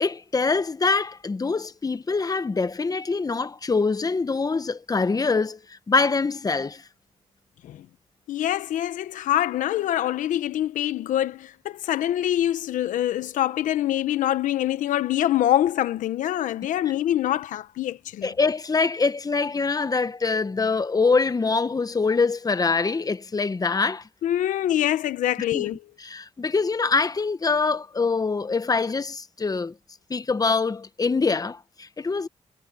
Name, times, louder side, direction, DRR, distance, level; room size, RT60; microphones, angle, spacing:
voice 1, 0.0-6.8 16.9-17.0 18.2-24.0 25.5-25.7 26.0-29.7 30.1-32.3, left 4 dB, 30° left, 1.2 m, -24 dB
voice 2, 8.3-18.3 24.2-25.8, left 12 dB, 80° left, 1.1 m, -25 dB
cardioid pair, 70°, 13 cm